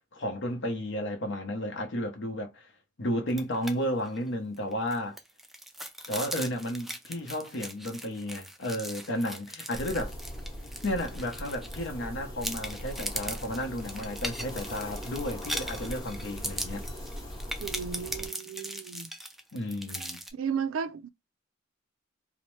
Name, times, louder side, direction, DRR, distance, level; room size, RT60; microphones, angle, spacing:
voice 1, 0.1-2.7 3.0-5.2 6.1-10.1 10.8-16.9 19.5-20.2, left 1 dB, 65° left, 0.8 m, -33 dB
sound 1, 3.3-3.7 4.0-4.2 4.6-12.0 12.4-20.3, right 1 dB, ahead, 0.3 m, -39 dB
sound 2, 9.7-18.3, equal, 20° left, 0.9 m, -40 dB
voice 2, 17.6-19.1 20.3-21.1, right 7 dB, 85° right, 0.4 m, -34 dB
2.8 x 2.0 x 3.1 m
head